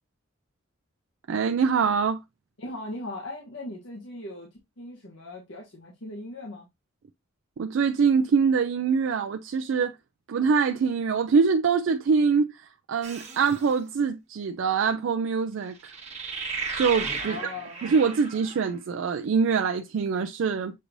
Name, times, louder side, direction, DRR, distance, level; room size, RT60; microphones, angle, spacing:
voice 1, 1.3-2.2 7.6-9.9 10.3-15.8 16.7-17.4 17.8-20.7, right 5 dB, 70° right, 0.4 m, -24 dB
voice 2, 2.6-4.5 4.8-6.7 17.3-17.8, left 2 dB, 70° left, 1.0 m, -38 dB
sound 1, 13.0-13.7 15.8-18.7, right 4 dB, 35° right, 1.2 m, -35 dB
6.5 x 3.1 x 2.6 m
head